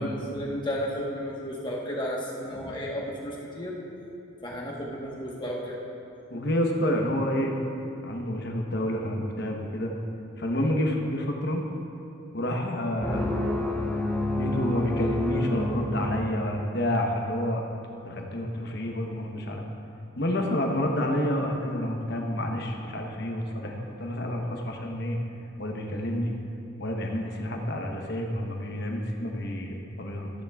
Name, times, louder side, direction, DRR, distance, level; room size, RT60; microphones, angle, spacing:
voice 1, 0.0-3.8 4.4-5.8, equal, 20° left, -3 dB, 1.2 m, -33 dB
voice 2, 6.3-7.5 8.0-9.9 10.4-11.6 12.3-13.4 14.4-17.6 18.0-19.6 20.2-25.2 25.6-26.3 26.8-30.3, left 1 dB, 50° left, 1 dB, 1.0 m, -29 dB
sound 1, 13.0-16.6, left 1 dB, 5° left, 0.7 m, -29 dB
14.0 x 10.0 x 2.4 m, 2.7 s
head